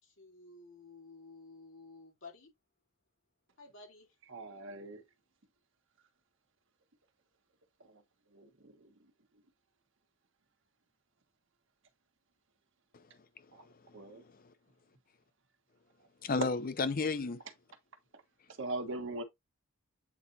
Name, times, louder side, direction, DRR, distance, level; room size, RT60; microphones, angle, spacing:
voice 1, 0.0-2.5 3.6-4.1, left 3 dB, 60° left, 3.8 m, -53 dB
voice 2, 4.3-5.0 7.9-8.0 8.3-8.9 13.5-13.7 13.9-14.2 18.1-18.2 18.6-19.2, right 2 dB, 60° right, 1.4 m, -41 dB
voice 3, 13.4-14.5 16.2-17.4, left 4 dB, 40° left, 0.6 m, -35 dB
8.2 x 4.2 x 2.7 m
head